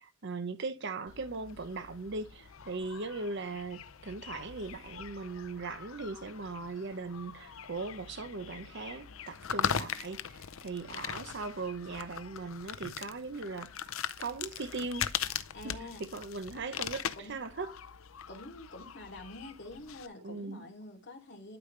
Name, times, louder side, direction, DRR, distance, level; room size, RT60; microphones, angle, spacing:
voice 1, 0.0-13.7 14.2-15.1 15.6-17.7 20.2-20.7, right 3 dB, 60° right, 0.8 m, -39 dB
sound 1, 1.1-20.1, left 8 dB, 75° left, 0.6 m, -41 dB
voice 2, 15.5-16.0 17.2-17.3 18.3-21.6, left 1 dB, 55° left, 2.7 m, -47 dB
12.0 x 5.0 x 3.2 m
head